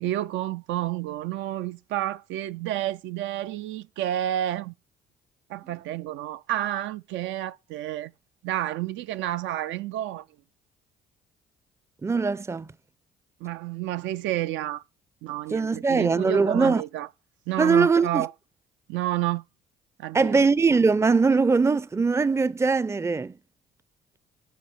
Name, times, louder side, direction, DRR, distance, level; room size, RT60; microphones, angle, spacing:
voice 1, 0.0-4.7 5.5-8.1 8.4-10.2 13.4-14.8 15.2-17.1 17.5-18.3 18.9-19.4 20.0-20.4, right 13 dB, 65° right, 0.5 m, -30 dB
voice 2, 12.0-12.7 15.5-16.8 17.6-18.3 20.1-23.4, right 4 dB, 15° right, 0.5 m, -21 dB
10.5 x 5.4 x 4.2 m
hypercardioid pair, 50°, 21 cm